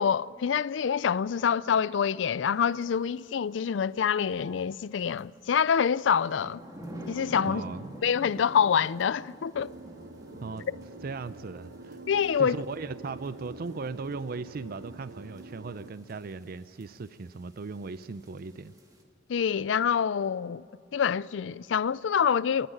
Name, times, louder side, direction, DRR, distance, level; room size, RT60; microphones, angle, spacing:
voice 1, 0.0-6.6 7.1-7.6 8.0-9.7 12.1-12.6 19.3-20.6 20.9-22.7, left 7 dB, 75° left, 0.4 m, -26 dB
sound 1, 2.8-2.9 5.2-19.0, right 1 dB, 20° right, 2.1 m, -48 dB
voice 2, 7.4-8.0 10.4-10.6 11.0-12.0 12.4-18.7, right 4 dB, 55° right, 0.5 m, -38 dB
sound 2, 9.5-15.9, right 2 dB, 85° right, 1.0 m, -46 dB
29.5 x 10.0 x 9.2 m
head